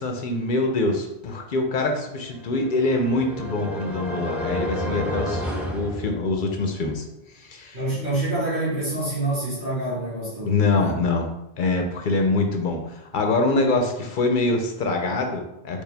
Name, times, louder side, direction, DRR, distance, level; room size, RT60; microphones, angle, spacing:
voice 1, 0.0-5.5 5.7-7.1 7.3-7.8 10.4-11.3 11.6-15.8, left 2 dB, 60° left, 3 dB, 0.6 m, -24 dB
sound 1, 2.3-6.7, left 1 dB, ahead, 0.4 m, -31 dB
voice 2, 7.7-10.9, right 2 dB, 45° right, -11 dB, 1.8 m, -27 dB
4.6 x 2.3 x 3.3 m, 0.87 s
omnidirectional pair, 1.1 m